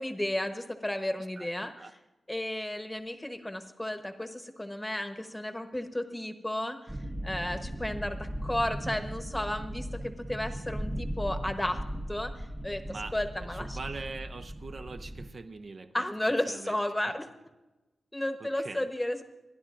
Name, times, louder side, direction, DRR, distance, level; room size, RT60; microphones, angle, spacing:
voice 1, 0.0-1.9 2.3-7.0 7.2-11.8 12.1-13.8 15.9-17.3 18.1-19.2, left 1 dB, 10° left, 6 dB, 1.0 m, -33 dB
sound 1, 6.9-15.3, equal, 15° right, 0.7 m, -38 dB
voice 2, 13.5-16.1 16.5-16.8 18.4-18.9, right 3 dB, 50° right, 8 dB, 0.6 m, -42 dB
28.0 x 11.0 x 2.5 m, 1.1 s
wide cardioid pair, 125°, 0 cm